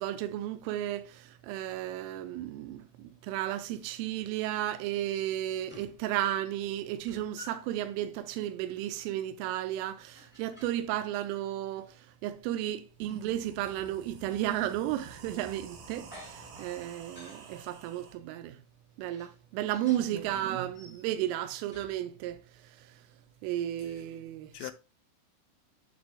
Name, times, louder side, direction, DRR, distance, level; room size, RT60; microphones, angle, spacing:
voice 1, 0.0-11.9 12.2-18.6 19.0-22.4 23.4-24.7, right 12 dB, 90° right, 3.2 m, -33 dB
sound 1, 5.3-5.4 5.7-6.0 6.3-7.7 8.1-8.3 10.1-10.9 11.4-11.9 13.4-13.5 14.9-15.2 15.9-17.6 18.2-18.3 19.1-20.1 20.6-21.3 21.7-22.4, left 3 dB, 5° left, 0.9 m, -54 dB
sound 2, 12.9-18.1, right 4 dB, 70° right, 2.1 m, -50 dB
voice 2, 20.0-20.4 23.8-23.9 24.5-24.7, left 16 dB, 90° left, 3.1 m, -44 dB
10.5 x 4.1 x 2.3 m
omnidirectional pair, 5.6 m